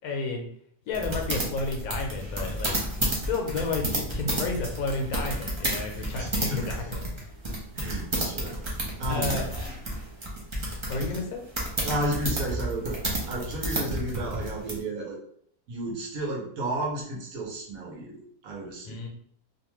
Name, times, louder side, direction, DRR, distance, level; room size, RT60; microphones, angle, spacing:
voice 1, 0.0-0.4 0.9-7.0 9.1-9.7 10.9-11.4 18.8-19.1, left 3 dB, 75° left, 2 dB, 1.0 m, -32 dB
sound 1, 0.9-14.8, right 1 dB, 50° right, 0.3 m, -31 dB
voice 2, 6.2-6.7 7.7-9.7 11.8-13.0 13.3-15.2 15.7-19.0, right 1 dB, 75° right, -2 dB, 1.2 m, -33 dB
2.8 x 2.2 x 3.0 m, 0.66 s
omnidirectional pair, 1.6 m